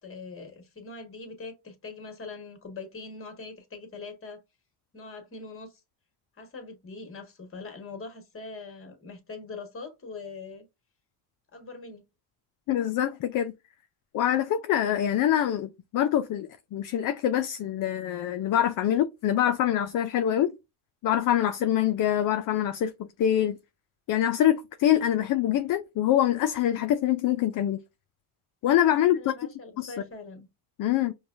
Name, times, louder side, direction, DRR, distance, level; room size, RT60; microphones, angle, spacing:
voice 1, 0.0-4.4 4.9-5.8 6.4-10.6 11.5-12.1 29.0-30.5, left 4 dB, 25° left, 1.6 m, -42 dB
voice 2, 12.7-13.5 14.1-20.5 21.0-23.6 24.1-27.8 28.6-29.3 29.8-29.9 30.8-31.1, left 11 dB, 45° left, 0.5 m, -25 dB
5.2 x 2.3 x 2.5 m
supercardioid pair, 90°, 48 cm